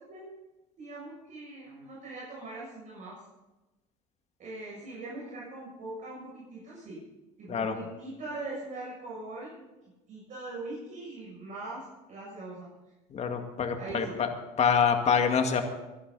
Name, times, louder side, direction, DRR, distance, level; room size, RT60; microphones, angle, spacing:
voice 1, 0.8-3.2 4.4-7.0 7.4-9.7 10.1-12.7 13.8-14.2, right 2 dB, 45° right, -6 dB, 7.3 m, -41 dB
voice 2, 13.1-14.3 14.6-15.6, left 6 dB, 40° left, 5 dB, 2.2 m, -26 dB
23.5 x 11.5 x 4.2 m, 1.1 s
supercardioid pair, 100°, 18 cm